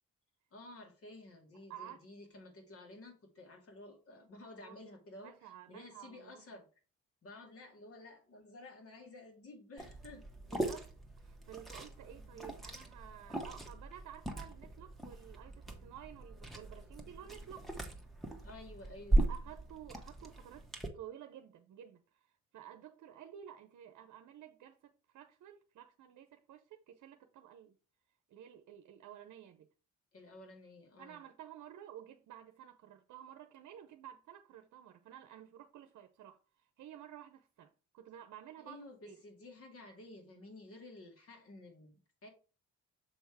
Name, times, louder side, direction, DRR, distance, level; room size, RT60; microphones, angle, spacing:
voice 1, 0.5-6.7 7.2-10.3 18.4-19.3 30.1-31.2 38.6-42.3, left 2 dB, 50° left, 2.3 m, -53 dB
voice 2, 1.7-2.0 4.5-4.8 5.2-6.4 10.5-17.7 19.3-20.7 20.9-27.7 28.3-29.7 31.0-39.2, right 10 dB, 70° right, 0.8 m, -52 dB
Liquid, 9.8-20.9, right 2 dB, ahead, 1.4 m, -38 dB
7.0 x 3.5 x 4.7 m
cardioid pair, 90°, 30 cm